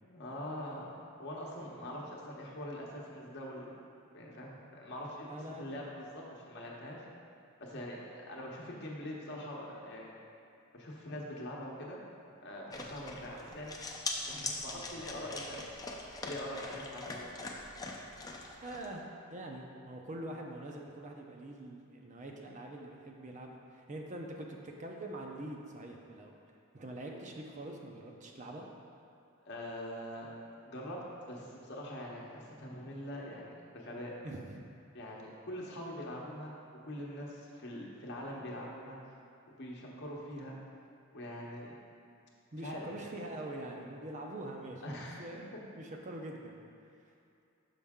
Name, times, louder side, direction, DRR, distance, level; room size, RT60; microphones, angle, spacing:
voice 1, 0.0-7.0 7.6-10.1 10.7-12.0 12.4-15.6 16.2-17.3 29.4-30.3 30.6-34.1 34.9-36.5 36.8-39.1 39.5-40.6 41.1-41.8 42.6-42.9 44.8-45.3, left 1 dB, 55° left, -3 dB, 0.9 m, -43 dB
voice 2, 5.2-5.8 14.3-15.4 18.6-26.4 26.7-28.7 34.2-34.6 42.5-45.5 45.7-46.6, right 1 dB, 35° right, 1 dB, 0.6 m, -44 dB
sound 1, 12.7-18.9, left 3 dB, 20° left, 0.5 m, -42 dB
6.3 x 5.6 x 3.6 m, 2.6 s
head